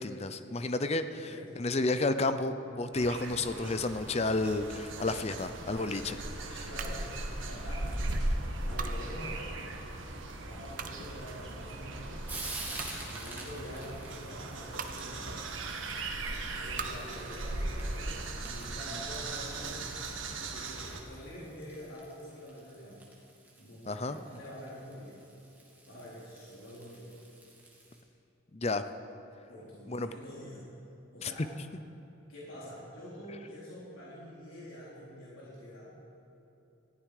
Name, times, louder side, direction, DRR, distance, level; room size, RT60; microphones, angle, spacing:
voice 1, 0.0-1.3 1.6-6.2 6.5-6.7 23.9-24.2 28.5-28.8 29.9-30.1 31.2-31.3, left 2 dB, 30° left, 11 dB, 0.6 m, -31 dB
voice 2, 1.1-1.7 6.6-7.1 7.4-8.1 8.7-9.5 10.5-12.2 12.9-15.4 16.6-19.9 20.4-23.1 23.6-25.2 25.9-27.1 29.5-30.7 31.1-31.5 32.3-35.9, equal, 90° left, -7 dB, 3.8 m, -46 dB
sound 1, 2.9-21.0, right 2 dB, 75° right, 1.6 m, -38 dB
sound 2, 6.8-21.3, right 5 dB, 40° right, 0.8 m, -48 dB
Frying (food), 11.1-28.0, right 2 dB, 10° right, 2.3 m, -49 dB
19.5 x 15.0 x 4.9 m, 2.9 s
head